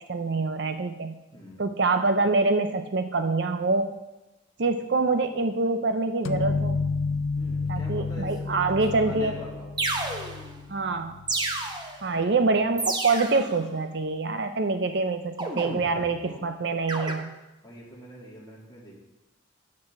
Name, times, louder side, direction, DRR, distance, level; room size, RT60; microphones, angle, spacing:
voice 1, 0.0-1.1 1.6-3.9 4.6-6.8 7.7-9.3 10.7-11.2 12.0-17.3, right 3 dB, 55° right, 8 dB, 0.6 m, -25 dB
sound 1, 6.2-11.8, left 4 dB, 80° left, 0.5 m, -31 dB
voice 2, 7.3-9.8 15.5-16.4 17.6-18.9, equal, 20° left, -6 dB, 2.9 m, -44 dB
sound 2, 9.1-9.2 9.8-10.6 11.3-12.1 12.8-13.6 15.4-16.2 16.9-17.1, right 2 dB, 20° right, 1.0 m, -31 dB
9.5 x 6.5 x 7.0 m, 1.0 s
head